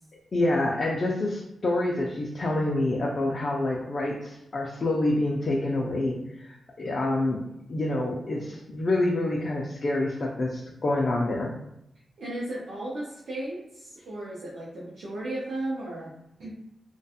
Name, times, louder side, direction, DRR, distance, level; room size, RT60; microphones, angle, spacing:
voice 1, 0.3-7.4 7.7-11.5, left 2 dB, 40° left, -2 dB, 0.3 m, -27 dB
voice 2, 12.2-16.1 16.4-16.5, right 1 dB, 85° right, -6 dB, 0.5 m, -35 dB
2.3 x 2.2 x 2.7 m, 0.82 s
wide cardioid pair, 160°, 0 cm